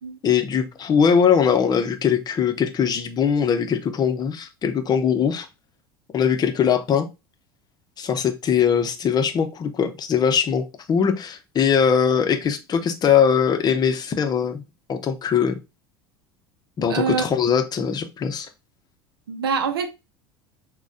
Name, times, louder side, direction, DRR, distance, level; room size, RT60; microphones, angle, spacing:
voice 1, 0.2-5.5 6.1-7.1 8.0-14.6 14.9-15.6 16.8-18.5, left 7 dB, 30° left, 0.7 m, -21 dB
voice 2, 16.9-17.3 19.3-19.9, right 6 dB, 75° right, 0.6 m, -24 dB
6.0 x 2.3 x 2.6 m
figure-of-eight pair, 75°, 13 cm